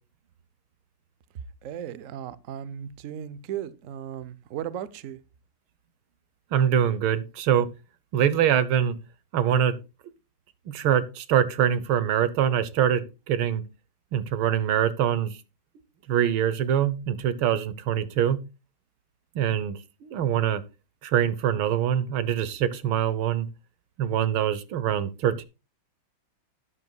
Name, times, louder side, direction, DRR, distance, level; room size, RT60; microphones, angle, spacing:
voice 1, 1.6-5.2, right 10 dB, 60° right, 0.8 m, -36 dB
voice 2, 6.5-7.7 8.1-9.0 9.3-9.8 10.7-13.6 14.1-15.4 16.1-18.4 19.4-20.6 21.0-23.5 24.0-25.4, right 9 dB, 90° right, 1.8 m, -24 dB
12.0 x 11.0 x 2.3 m
omnidirectional pair, 2.2 m